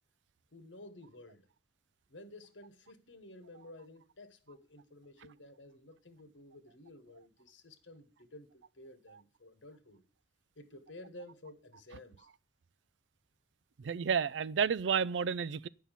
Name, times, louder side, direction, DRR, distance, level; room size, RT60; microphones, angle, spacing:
voice 1, 0.5-1.5 2.1-10.0 10.5-12.3, left 1 dB, 85° left, 1.3 m, -53 dB
voice 2, 13.8-15.7, right 6 dB, 70° right, 0.4 m, -31 dB
8.6 x 5.5 x 7.4 m
head